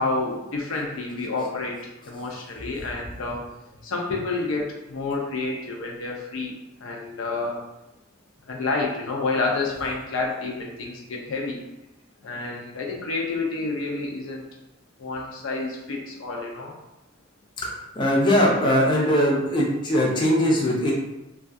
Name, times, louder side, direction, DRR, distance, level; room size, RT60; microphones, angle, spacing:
voice 1, 0.0-3.4 3.8-6.6 6.8-7.6 8.5-11.6 12.2-14.5 15.0-16.7, left 3 dB, 85° left, -1 dB, 0.5 m, -29 dB
voice 2, 18.0-20.9, equal, 25° left, -3 dB, 0.4 m, -20 dB
2.3 x 2.3 x 2.5 m, 0.94 s
head